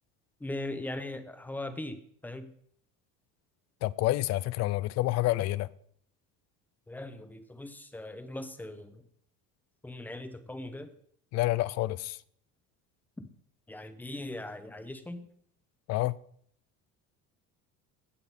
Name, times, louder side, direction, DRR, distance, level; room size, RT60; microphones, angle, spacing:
voice 1, 0.4-2.5 6.9-9.0 9.8-10.9 13.7-15.3, left 1 dB, 5° left, 0.7 m, -40 dB
voice 2, 3.8-5.7 11.3-12.2 15.9-16.2, left 17 dB, 50° left, 0.4 m, -28 dB
16.5 x 5.8 x 3.6 m
cardioid pair, 150°, 33 cm